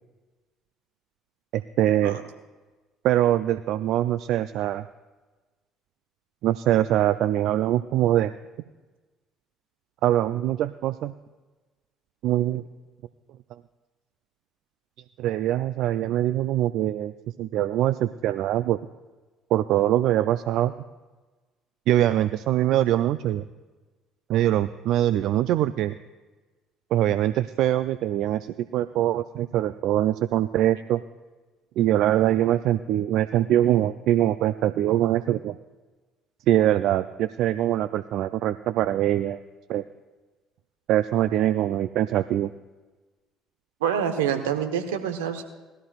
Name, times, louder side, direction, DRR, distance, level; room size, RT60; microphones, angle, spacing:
voice 1, 1.5-2.2 3.0-4.8 6.4-8.3 10.0-11.1 12.2-12.6 15.2-17.1 17.4-18.8 19.5-20.7 21.9-23.4 24.3-25.9 26.9-31.0 31.8-35.6 36.5-39.4 39.7-39.8 40.9-42.5, right 12 dB, 65° right, 13 dB, 0.3 m, -23 dB
voice 2, 43.8-45.4, right 8 dB, 80° right, 7 dB, 1.1 m, -26 dB
19.5 x 13.0 x 2.4 m, 1.2 s
hypercardioid pair, 55°, 0 cm